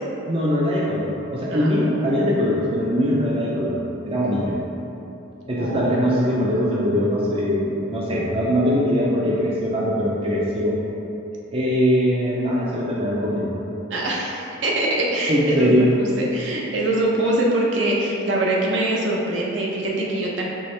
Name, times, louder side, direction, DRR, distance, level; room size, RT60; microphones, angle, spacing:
voice 1, 0.3-3.8 4.1-4.6 5.5-10.7 11.5-13.5 15.3-15.9, equal, 30° right, -5 dB, 0.4 m, -21 dB
voice 2, 5.6-5.9 13.9-15.7 16.0-20.4, right 1 dB, 70° right, -3 dB, 0.6 m, -23 dB
4.5 x 3.0 x 3.2 m, 2.9 s
head